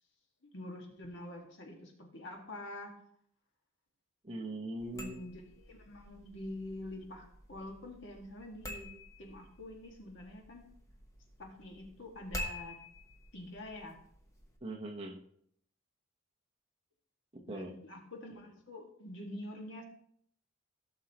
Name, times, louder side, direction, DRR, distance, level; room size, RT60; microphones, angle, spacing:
voice 1, 0.4-2.9 4.9-8.9 9.2-10.6 11.4-12.8 13.3-14.0 17.5-19.8, left 1 dB, 55° left, 1.7 m, -46 dB
voice 2, 4.2-5.2 14.6-15.2 17.3-17.8, right 2 dB, 25° right, 1.0 m, -41 dB
sound 1, 4.8-14.6, equal, 15° left, 1.1 m, -48 dB
15.5 x 6.4 x 2.9 m
head